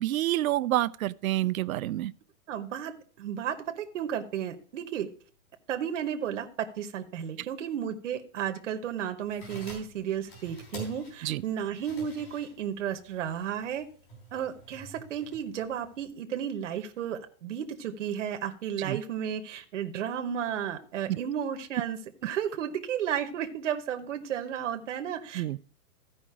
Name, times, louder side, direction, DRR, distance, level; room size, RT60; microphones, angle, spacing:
voice 1, 0.0-2.1 11.2-11.4 18.8-19.0 21.1-21.2 25.3-25.6, right 15 dB, 70° right, 0.5 m, -28 dB
voice 2, 2.5-5.1 5.7-13.8 14.3-25.6, right 9 dB, 55° right, 1.0 m, -33 dB
sound 1, 9.2-16.1, right 1 dB, 40° left, 4.1 m, -48 dB
14.0 x 5.2 x 4.8 m
hypercardioid pair, 180°, 43 cm